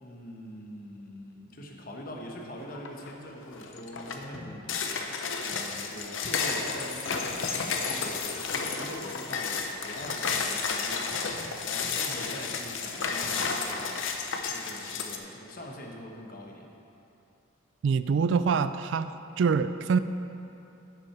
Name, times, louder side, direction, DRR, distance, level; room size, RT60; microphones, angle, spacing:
voice 1, 0.0-4.8 5.4-11.3 11.6-14.0 14.4-16.7, left 1 dB, 45° left, 0 dB, 1.0 m, -43 dB
sound 1, 2.7-3.1 3.5-15.2, left 5 dB, 70° left, 0.7 m, -32 dB
voice 2, 17.8-20.0, right 5 dB, 65° right, 12 dB, 0.3 m, -25 dB
8.9 x 6.1 x 5.9 m, 2.8 s
head